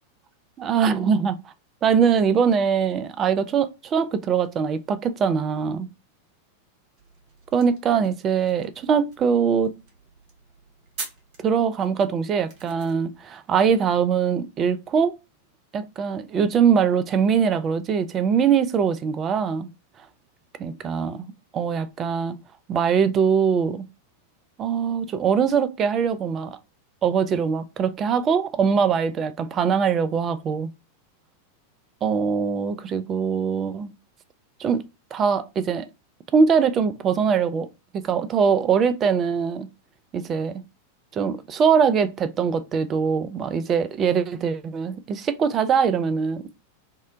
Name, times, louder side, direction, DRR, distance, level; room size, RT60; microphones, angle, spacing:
voice 1, 0.6-1.4 1.8-5.9 7.5-9.7 11.4-15.1 15.7-19.7 20.6-22.4 22.7-23.8 24.6-26.6 27.0-30.7 32.0-33.9 34.6-34.8 35.1-35.9 36.3-37.7 37.9-39.7 40.1-40.6 41.1-46.5, right 6 dB, 30° right, 0.3 m, -22 dB
sound 1, 7.0-13.2, right 4 dB, 45° right, 0.8 m, -44 dB
2.7 x 2.1 x 3.5 m
figure-of-eight pair, 90°, 0 cm